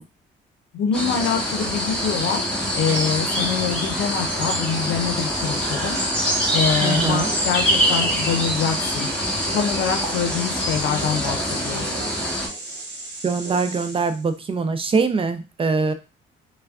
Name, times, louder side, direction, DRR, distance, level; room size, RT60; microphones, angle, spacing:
voice 1, 0.7-2.4 2.7-6.0 6.5-9.1 9.5-11.8, left 7 dB, 85° left, 6 dB, 0.6 m, -25 dB
sound 1, 0.9-12.5, equal, 5° left, 1.2 m, -24 dB
sound 2, 4.9-14.3, right 3 dB, 60° right, 0.8 m, -35 dB
voice 2, 6.8-7.3 13.2-15.9, right 4 dB, 30° right, 9 dB, 0.4 m, -23 dB
3.3 x 2.1 x 2.3 m, 0.30 s
cardioid pair, 90°, 20 cm